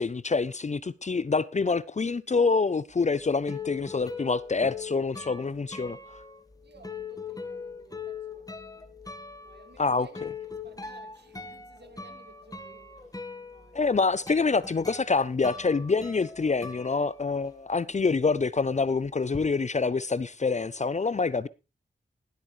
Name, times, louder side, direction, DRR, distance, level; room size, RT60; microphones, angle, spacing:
voice 1, 0.0-6.0 9.8-10.3 13.7-21.5, left 4 dB, 40° left, 0.6 m, -26 dB
sound 1, 2.9-17.7 18.0-19.4, left 5 dB, 20° left, 1.4 m, -41 dB
voice 2, 6.6-8.4 8.8-10.3 10.6-13.1 13.5-13.8, right 3 dB, 60° right, 2.5 m, -56 dB
20.0 x 8.2 x 3.2 m
cardioid pair, 60°, 19 cm